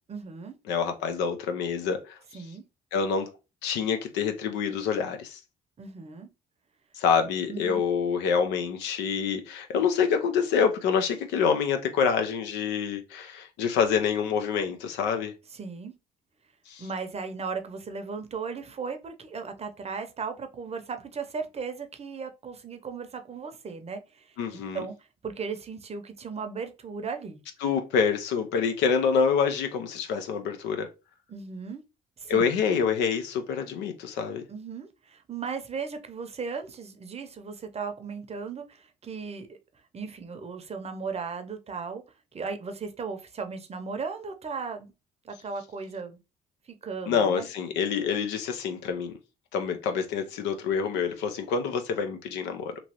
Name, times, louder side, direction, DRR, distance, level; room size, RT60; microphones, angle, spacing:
voice 1, 0.1-0.5 2.3-2.6 5.8-6.3 7.5-7.8 15.5-15.9 16.8-27.4 31.3-31.8 32.2-32.5 34.5-39.6 39.9-42.0 42.3-44.9 45.2-46.2 46.7-47.5, right 5 dB, 35° right, 0.7 m, -36 dB
voice 2, 0.7-2.2 2.9-3.3 3.6-5.4 7.0-15.3 16.7-16.8 24.4-24.8 27.6-30.9 32.3-34.4 47.1-49.1 49.5-52.7, left 6 dB, 85° left, 0.6 m, -26 dB
3.0 x 2.6 x 2.9 m
supercardioid pair, 65°, 18 cm